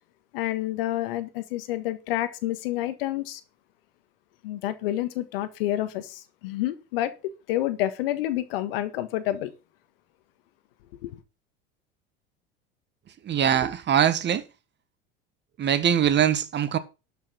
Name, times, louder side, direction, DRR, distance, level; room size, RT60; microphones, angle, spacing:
voice 1, 0.3-3.4 4.4-7.1 7.5-9.5 11.0-11.2, left 14 dB, 75° left, 1.6 m, -29 dB
voice 2, 13.2-14.4 15.6-16.8, right 9 dB, 40° right, 1.7 m, -22 dB
12.5 x 5.9 x 6.0 m
hypercardioid pair, 85°, 29 cm